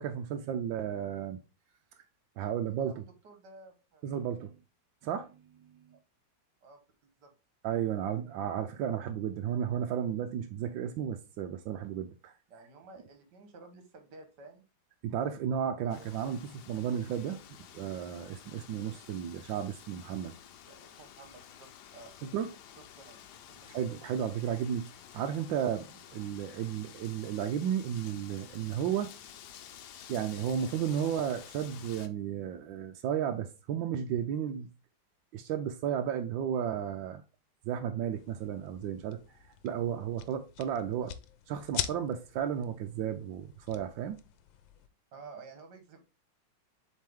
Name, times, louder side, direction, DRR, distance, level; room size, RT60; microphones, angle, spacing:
voice 1, 0.0-1.4 2.4-2.9 4.0-4.5 5.0-5.7 7.6-12.3 15.0-16.4 16.7-17.4 17.7-20.3 22.3-22.5 23.7-24.8 25.1-29.1 30.1-34.7 35.3-37.2 37.6-39.4 39.6-41.2 41.5-44.2, right 9 dB, 85° right, 1.4 m, -33 dB
voice 2, 2.8-4.2 5.9-6.0 6.6-6.8 7.2-7.3 12.5-14.6 15.7-16.2 20.7-22.1 22.8-23.7 26.6-26.8 45.1-46.0, right 3 dB, 65° right, 1.8 m, -53 dB
Wind, 15.9-32.1, left 9 dB, 70° left, 1.2 m, -52 dB
sound 1, 38.1-44.9, left 11 dB, 85° left, 1.4 m, -43 dB
7.4 x 3.6 x 3.5 m
omnidirectional pair, 2.0 m